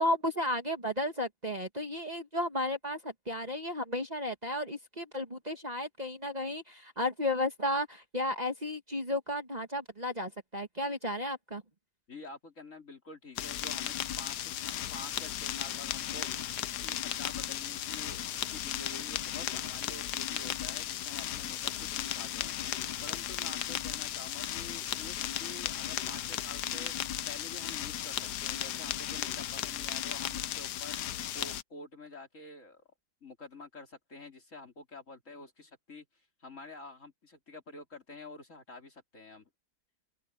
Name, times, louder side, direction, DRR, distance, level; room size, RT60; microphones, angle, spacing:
voice 1, 0.0-11.6, left 1 dB, 25° right, 1.7 m, -33 dB
voice 2, 12.1-16.5 16.8-26.9 27.3-32.8 33.2-39.5, left 3 dB, 50° left, 3.6 m, -48 dB
sound 1, 13.4-31.6, left 11 dB, 90° left, 1.4 m, -35 dB
open air
omnidirectional pair, 1.7 m